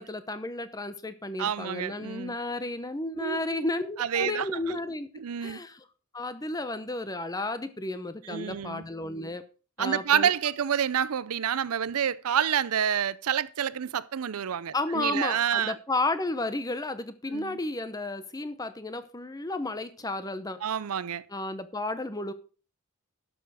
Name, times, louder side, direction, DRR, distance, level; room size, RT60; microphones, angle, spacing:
voice 1, 0.0-5.1 5.4-5.8 6.1-9.4 9.8-10.3 14.7-20.6 21.3-22.3, left 2 dB, 15° left, 0.8 m, -32 dB
voice 2, 1.4-2.3 3.1-3.7 4.0-4.8 5.2-5.6 8.2-8.8 9.8-15.7 17.3-17.6 20.6-21.2, right 8 dB, 80° right, 0.5 m, -28 dB
12.0 x 6.9 x 4.9 m
head